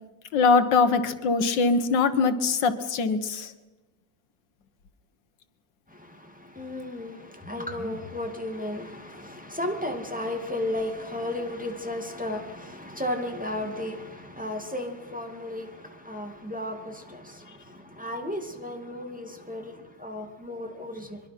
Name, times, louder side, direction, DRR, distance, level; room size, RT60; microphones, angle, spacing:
voice 1, 0.3-3.5, left 4 dB, 85° left, 1.9 m, -22 dB
voice 2, 5.9-21.2, left 1 dB, 5° right, 2.2 m, -34 dB
24.0 x 23.0 x 6.0 m
omnidirectional pair, 1.9 m